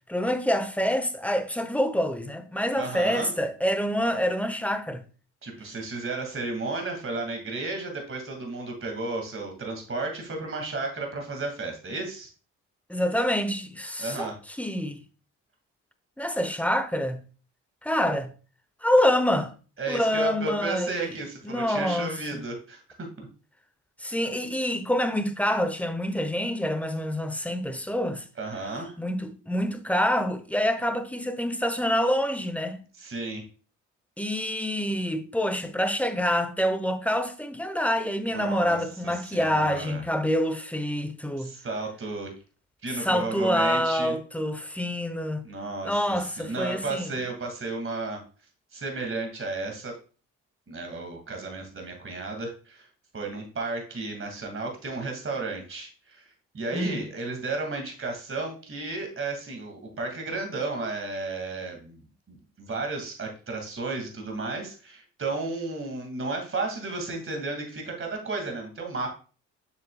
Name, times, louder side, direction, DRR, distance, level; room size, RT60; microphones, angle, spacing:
voice 1, 0.1-5.0 12.9-15.0 16.2-17.2 17.8-18.3 18.8-19.5 19.9-21.1 21.4-22.1 24.0-28.2 29.0-32.8 34.2-41.5 42.9-45.4 45.8-47.1 56.7-57.0, equal, 5° left, 0.9 m, -26 dB
voice 2, 2.8-3.3 5.4-12.3 14.0-14.3 19.8-23.3 28.4-29.0 33.0-33.4 38.3-38.8 39.2-40.0 41.4-42.3 42.8-44.1 45.4-48.2 48.7-49.9 50.7-52.9 53.1-56.2 56.5-62.0 62.3-69.2, right 3 dB, 35° right, 2.3 m, -33 dB
6.9 x 6.5 x 2.3 m
hypercardioid pair, 50°, 36 cm